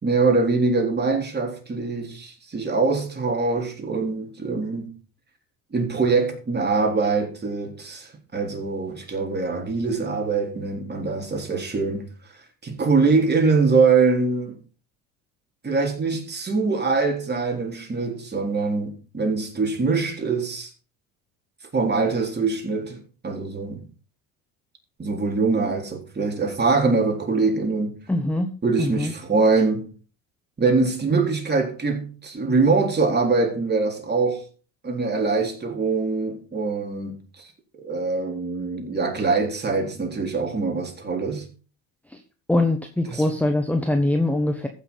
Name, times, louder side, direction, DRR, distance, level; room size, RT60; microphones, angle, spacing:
voice 1, 0.0-4.9 5.7-12.1 12.6-14.6 15.6-20.7 21.7-23.9 25.0-28.0 28.6-29.9 30.6-34.4 34.8-37.5 37.7-41.5 43.1-43.2, right 4 dB, 20° right, 3.8 m, -23 dB
voice 2, 28.1-28.5 28.8-29.1 42.1-42.2 42.5-44.7, left 1 dB, 5° left, 1.2 m, -22 dB
15.0 x 6.3 x 4.1 m
supercardioid pair, 90°, 44 cm